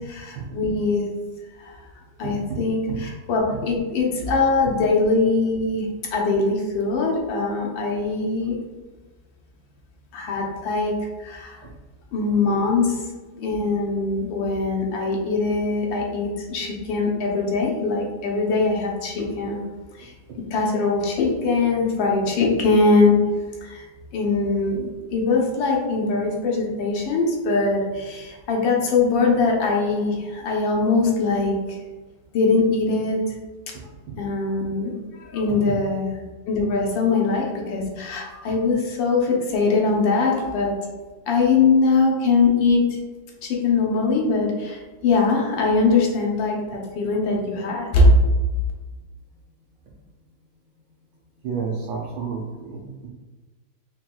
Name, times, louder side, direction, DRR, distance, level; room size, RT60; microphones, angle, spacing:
voice 1, 0.1-1.1 1.6-1.8 2.2-8.6 10.1-10.9 11.2-11.6 12.1-13.0 13.3-19.6 19.9-20.1 20.5-23.2 23.6-23.8 24.1-31.8 32.3-33.2 34.2-34.9 35.2-36.1 36.5-40.7 41.3-42.8 43.4-48.2, left 3 dB, 85° left, -1 dB, 1.5 m, -22 dB
voice 2, 2.2-2.6 2.9-3.0 33.7-34.1 51.4-53.1, right 5 dB, 80° right, -4 dB, 1.3 m, -31 dB
4.8 x 2.9 x 2.2 m, 1.3 s
omnidirectional pair, 2.0 m